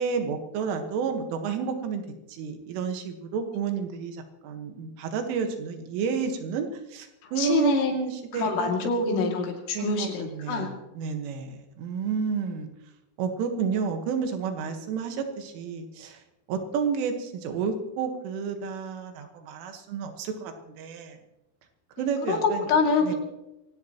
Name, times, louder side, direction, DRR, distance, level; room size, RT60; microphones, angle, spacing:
voice 1, 0.0-2.0 2.3-8.7 9.1-9.3 9.7-12.7 13.2-16.2 16.5-21.2 22.0-22.7 23.0-23.1, right 6 dB, 80° right, 5 dB, 4.0 m, -30 dB
voice 2, 7.2-7.9 8.3-10.7 22.3-23.2, left 4 dB, 80° left, 1 dB, 5.0 m, -25 dB
23.5 x 17.5 x 3.0 m, 0.94 s
omnidirectional pair, 5.6 m